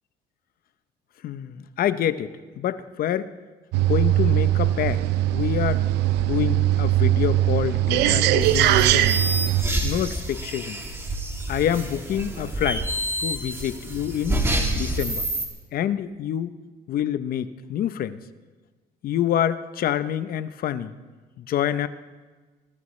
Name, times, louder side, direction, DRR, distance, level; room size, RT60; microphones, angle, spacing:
voice 1, 1.2-3.3 3.8-5.0 5.3-5.8 6.2-9.2 9.8-10.8 11.5-12.9 13.2-14.4 14.7-15.2 15.7-16.5 16.9-18.2 19.0-20.9 21.4-21.9, left 10 dB, 60° left, 13 dB, 0.8 m, -27 dB
sound 1, 3.7-9.6, right 14 dB, 80° right, 0.5 m, -20 dB
sound 2, 8.4-15.5, right 1 dB, 15° right, 2.6 m, -28 dB
24.0 x 15.5 x 3.2 m, 1.3 s
cardioid pair, 110°, 17 cm